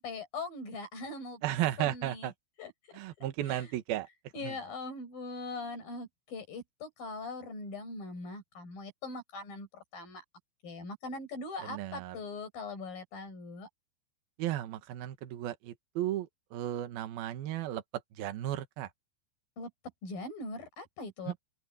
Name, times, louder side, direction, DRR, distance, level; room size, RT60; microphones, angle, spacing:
voice 1, 0.0-1.4 1.8-2.3 2.6-3.7 4.3-10.2 10.6-13.7 19.6-19.7 20.0-21.4, left 3 dB, 50° left, 7.7 m, -41 dB
voice 2, 1.4-2.3 2.9-4.1 4.4-4.5 11.6-12.2 14.4-17.8 18.2-18.9, right 13 dB, 60° right, 3.0 m, -34 dB
open air
omnidirectional pair, 5.4 m